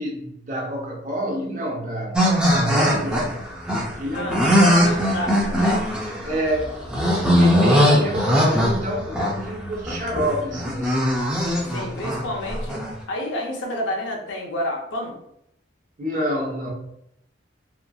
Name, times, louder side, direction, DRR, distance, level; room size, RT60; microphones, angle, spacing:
voice 1, 0.0-3.4 4.0-5.2 5.5-5.6 6.2-6.8 7.3-11.3 16.0-16.7, right 1 dB, 45° right, -2 dB, 0.7 m, -28 dB
sound 1, 2.1-12.9, equal, 5° right, 0.4 m, -20 dB
voice 2, 4.1-5.8 11.7-12.8 13.1-15.2, left 1 dB, 90° left, 0 dB, 0.6 m, -29 dB
2.9 x 2.5 x 2.3 m, 0.75 s
head